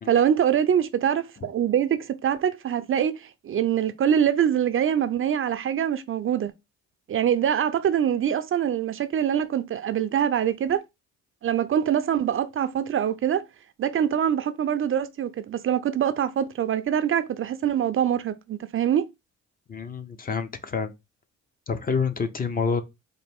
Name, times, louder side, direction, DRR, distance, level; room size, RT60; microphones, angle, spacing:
voice 1, 0.1-6.5 7.1-10.8 11.4-13.4 13.8-19.0, right 9 dB, 45° right, 0.4 m, -24 dB
voice 2, 19.7-20.9 21.7-22.8, left 5 dB, 30° left, 0.6 m, -27 dB
4.0 x 2.5 x 3.5 m
cardioid pair, 90°, 30 cm